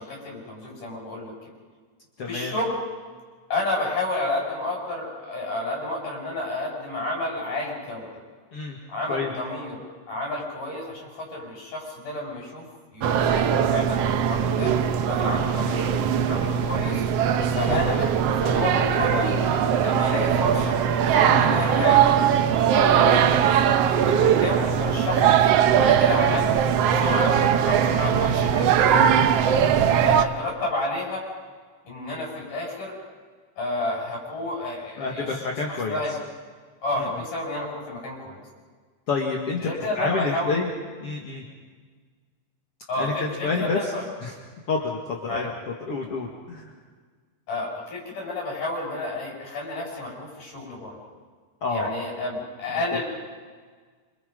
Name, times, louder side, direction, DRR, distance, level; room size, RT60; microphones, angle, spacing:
voice 1, 0.0-1.3 2.3-2.8 3.5-8.1 8.9-12.7 12.9-14.7 15.1-16.0 16.3-17.0 17.5-19.4 19.8-20.8 21.1-22.2 22.7-23.4 24.1-26.5 26.9-29.1 29.8-31.2 31.9-33.0 33.6-35.4 35.7-36.1 36.8-38.4 39.6-40.6 42.9-44.1 45.3-45.5 47.5-51.0 51.7-53.0, left 2 dB, 80° left, -2 dB, 8.7 m, -30 dB
voice 2, 2.2-2.6 8.5-8.8 9.1-9.3 21.3-21.7 29.6-30.1 35.0-36.2 37.0-37.1 39.1-39.6 40.0-40.7 41.0-41.4 43.0-43.9 44.2-44.4 44.7-45.5 45.9-46.7 51.6-51.9 52.9-53.0, left 4 dB, 50° left, 0 dB, 2.9 m, -29 dB
sound 1, 13.0-30.3, right 8 dB, 65° right, 1.7 m, -20 dB
27.0 x 27.0 x 5.4 m, 1.5 s
omnidirectional pair, 3.6 m